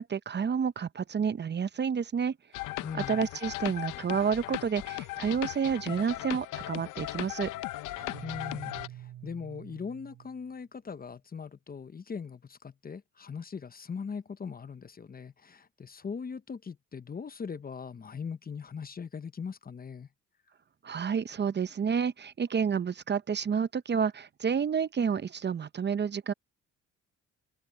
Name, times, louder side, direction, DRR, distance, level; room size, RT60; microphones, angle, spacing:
voice 1, 0.0-2.4 3.1-7.5 20.8-26.3, right 6 dB, 35° right, 0.7 m, -30 dB
sound 1, 2.5-8.9, left 17 dB, 90° left, 0.7 m, -37 dB
voice 2, 2.8-3.3 8.2-20.1, left 6 dB, 30° left, 0.8 m, -40 dB
sound 2, 8.0-10.5, right 12 dB, 80° right, 3.4 m, -47 dB
cardioid pair, 90°, 30 cm